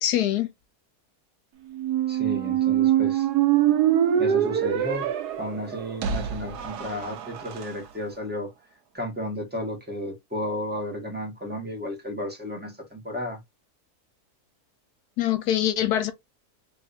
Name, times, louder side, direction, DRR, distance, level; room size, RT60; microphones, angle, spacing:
voice 1, 0.0-0.5 15.2-16.1, left 11 dB, 80° left, 1.2 m, -23 dB
Squeak, 1.7-7.7, right 10 dB, 90° right, 1.3 m, -24 dB
voice 2, 2.1-3.3 4.2-5.1 5.4-8.5 8.9-13.4, equal, 5° right, 1.4 m, -33 dB
3.4 x 3.3 x 2.6 m
omnidirectional pair, 1.7 m